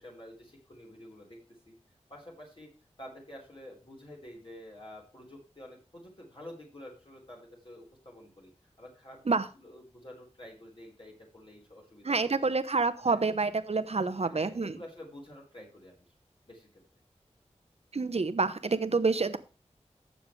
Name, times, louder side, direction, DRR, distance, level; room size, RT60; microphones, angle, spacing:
voice 1, 0.0-1.4 1.6-1.8 2.1-2.7 3.0-12.5 13.0-13.2 14.2-16.1 16.5-16.8, left 1 dB, 45° left, -2 dB, 4.4 m, -49 dB
voice 2, 12.0-14.7 17.9-19.4, right 4 dB, 60° right, 11 dB, 1.0 m, -28 dB
15.5 x 6.9 x 3.3 m, 0.34 s
wide cardioid pair, 50°, 12 cm